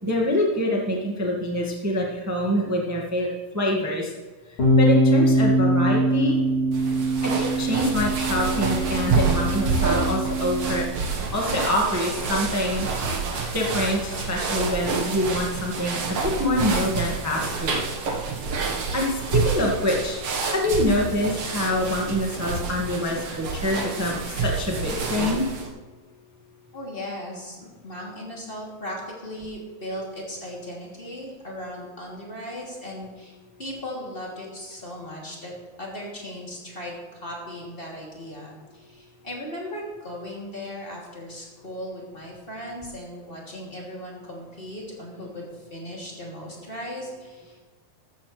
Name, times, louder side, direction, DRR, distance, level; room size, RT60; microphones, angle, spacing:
voice 1, 0.0-3.3 3.5-4.1 4.8-6.4 7.2-10.8 11.3-13.2 13.5-17.8 18.9-20.2 20.5-25.4, left 1 dB, 25° right, -2 dB, 0.3 m, -25 dB
Bass guitar, 4.6-10.8, right 1 dB, 40° left, 3.5 m, -22 dB
sound 1, 6.7-25.7, right 4 dB, 55° right, 2.1 m, -28 dB
voice 2, 26.7-35.5 35.8-47.6, equal, 15° left, -4 dB, 2.7 m, -37 dB
14.0 x 14.0 x 3.3 m, 1.3 s
omnidirectional pair, 3.9 m